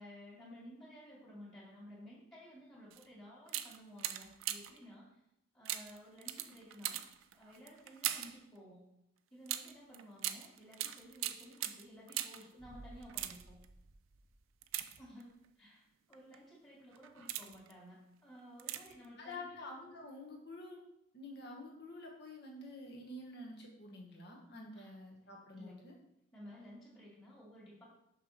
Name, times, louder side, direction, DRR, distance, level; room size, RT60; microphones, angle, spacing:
voice 1, 0.0-5.2 5.5-7.0 7.3-8.9 9.3-13.6 15.0-19.6 24.7-24.9 25.6-25.7 26.3-27.8, equal, 20° left, -8 dB, 2.1 m, -55 dB
sound 1, 2.9-3.1 3.5-4.8 5.7-8.4 9.5-12.5 13.0-13.7 14.6-15.5 16.1-16.4 16.9-17.7 18.6-19.1 19.3-19.4, right 12 dB, 80° right, 0.5 m, -41 dB
sound 2, 12.6-15.3 15.6-15.7, right 2 dB, 35° right, 0.7 m, -58 dB
voice 2, 19.2-20.8 21.1-25.9, left 2 dB, 55° left, 0 dB, 1.5 m, -49 dB
6.0 x 6.0 x 4.3 m, 0.81 s
head